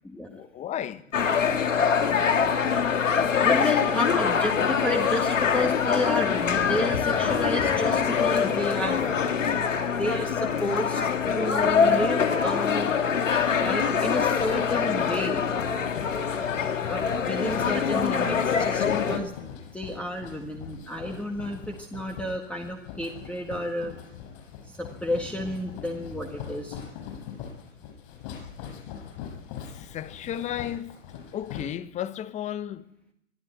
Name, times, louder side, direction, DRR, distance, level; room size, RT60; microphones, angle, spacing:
voice 1, 0.3-1.5 29.7-31.0 31.3-32.9, left 10 dB, 20° left, 1.1 m, -34 dB
sound 1, 1.1-19.2, left 6 dB, 80° left, 2.3 m, -24 dB
voice 2, 3.4-9.3 9.9-11.0 11.3-12.9 13.6-15.5 16.8-19.3 19.7-23.9 24.7-26.8, left 1 dB, 5° left, 1.8 m, -31 dB
sound 2, 14.2-31.6, left 8 dB, 45° left, 7.1 m, -42 dB
24.0 x 13.0 x 9.3 m
hypercardioid pair, 120°, 38 cm